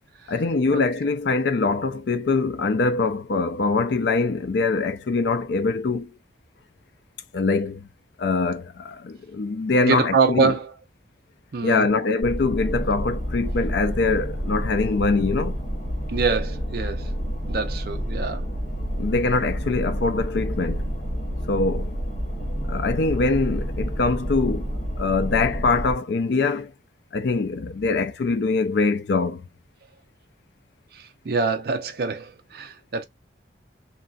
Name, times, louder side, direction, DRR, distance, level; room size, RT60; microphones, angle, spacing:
voice 1, 0.3-6.1 7.3-7.9 8.2-10.5 11.6-15.6 19.0-20.9 21.5-21.9 22.7-24.7 25.0-26.7 27.1-29.4, left 3 dB, 70° left, 0.4 m, -23 dB
voice 2, 9.8-10.7 11.5-11.9 16.1-17.1 17.5-18.5 30.9-33.0, right 4 dB, 55° right, 0.4 m, -25 dB
sound 1, 12.2-25.9, equal, 40° left, 0.8 m, -29 dB
3.0 x 2.6 x 2.3 m
head